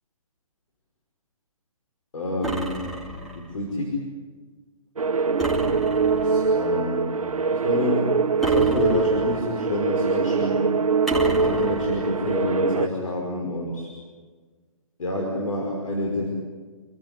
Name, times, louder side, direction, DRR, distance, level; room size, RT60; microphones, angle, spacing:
voice 1, 2.1-2.9 3.3-4.1 6.1-10.7 11.2-13.9 15.0-16.3, left 1 dB, 70° left, -1 dB, 5.5 m, -28 dB
sound 1, 2.4-3.5 5.4-6.5 8.4-9.5 11.1-12.1, equal, ahead, 2.9 m, -31 dB
sound 2, 5.0-12.9, right 5 dB, 75° right, 1.0 m, -23 dB
29.0 x 15.5 x 9.9 m, 1.5 s
figure-of-eight pair, 140°, 18 cm